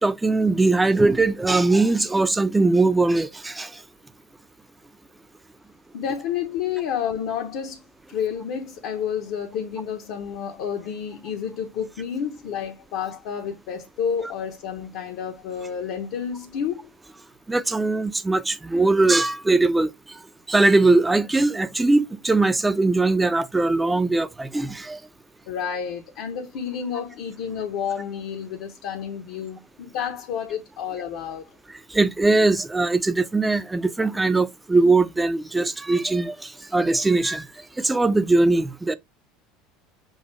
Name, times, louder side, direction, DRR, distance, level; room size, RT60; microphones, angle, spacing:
voice 1, 0.0-3.7 17.5-19.9 20.5-25.0 31.9-37.4 37.8-38.9, right 3 dB, 10° right, 0.6 m, -20 dB
voice 2, 5.9-7.8 8.1-16.9 25.5-31.5, left 8 dB, 60° left, 0.9 m, -30 dB
6.4 x 2.6 x 3.0 m
figure-of-eight pair, 70°, 0 cm